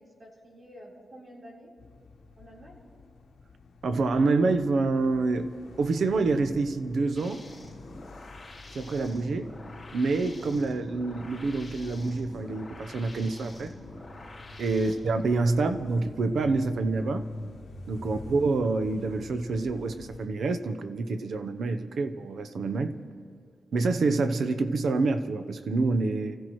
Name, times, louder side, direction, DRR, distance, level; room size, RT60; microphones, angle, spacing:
voice 1, 0.0-1.7 2.4-2.8 18.0-18.3, equal, 40° right, -4 dB, 4.0 m, -50 dB
sound 1, 1.8-20.3, left 2 dB, 80° left, 1.4 m, -47 dB
voice 2, 3.8-5.5 5.8-7.4 8.7-9.5 9.9-13.7 14.6-17.3 17.9-22.9 23.7-26.4, right 3 dB, 70° right, 10 dB, 0.8 m, -27 dB
sound 2, 7.2-14.9, left 2 dB, 5° left, 3.7 m, -47 dB
28.5 x 15.0 x 3.2 m, 2.2 s
wide cardioid pair, 165°, 0 cm